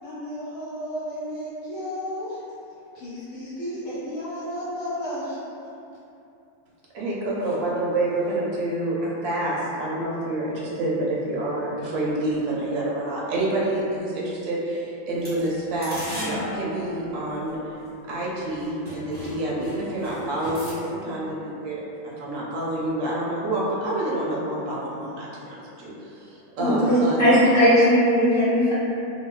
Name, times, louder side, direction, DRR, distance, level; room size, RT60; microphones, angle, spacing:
voice 1, 0.0-2.4 2.9-5.4, equal, 85° left, -12 dB, 1.4 m, -33 dB
voice 2, 6.9-17.6 18.1-27.2, right 1 dB, 65° right, -5 dB, 0.8 m, -28 dB
sound 1, 15.2-17.9 18.5-18.6 18.8-20.7, equal, 15° right, 0.3 m, -36 dB
voice 3, 26.6-28.7, equal, 50° left, -14 dB, 0.6 m, -18 dB
2.7 x 2.4 x 2.2 m, 2.8 s
omnidirectional pair, 1.6 m